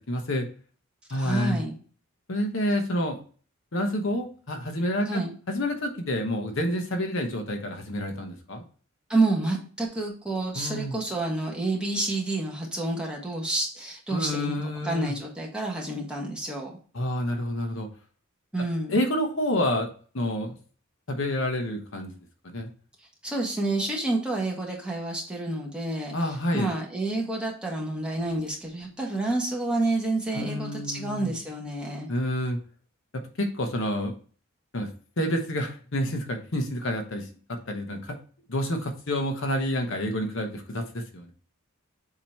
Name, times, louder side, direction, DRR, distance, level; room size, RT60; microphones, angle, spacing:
voice 1, 0.1-0.5 1.1-1.6 2.3-3.2 3.7-5.2 5.5-8.6 10.5-10.9 14.1-15.1 16.9-17.9 18.9-19.9 20.1-20.6 21.1-22.1 22.4-22.7 26.1-26.7 30.3-31.3 32.1-32.6 33.1-34.1 34.7-34.9 35.2-38.2 38.5-41.3, left 1 dB, 60° left, 4 dB, 1.0 m, -28 dB
voice 2, 1.1-1.7 5.0-5.3 9.1-16.7 18.5-19.0 23.2-32.1, right 2 dB, 5° right, -2 dB, 1.4 m, -29 dB
7.3 x 2.9 x 4.4 m, 0.41 s
head